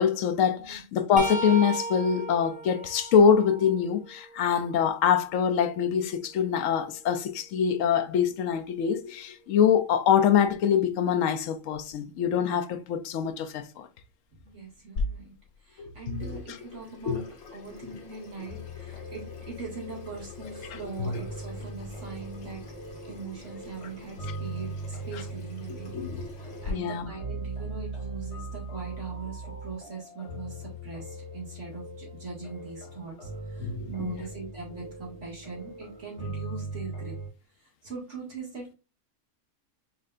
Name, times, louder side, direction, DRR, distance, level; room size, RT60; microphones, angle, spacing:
voice 1, 0.0-13.9 15.8-16.6 17.1-17.2 20.7-21.2 25.1-25.2 25.7-26.3 26.7-27.1 33.6-34.2, left 7 dB, 70° left, 0.9 m, -25 dB
sound 1, 1.2-4.9 5.5-7.4 10.3-10.5 11.7-11.9 13.2-13.3, right 3 dB, 10° right, 0.5 m, -38 dB
voice 2, 14.4-15.3 15.6-22.6 23.1-25.9 26.4-37.1 37.8-38.7, right 4 dB, 55° right, 2.3 m, -41 dB
Water tap faucet / Sink (filling or washing), 15.0-26.7, left 3 dB, 90° left, 1.6 m, -42 dB
sound 2, 18.5-37.3, right 2 dB, 55° left, 2.0 m, -40 dB
5.6 x 3.2 x 2.5 m
omnidirectional pair, 1.5 m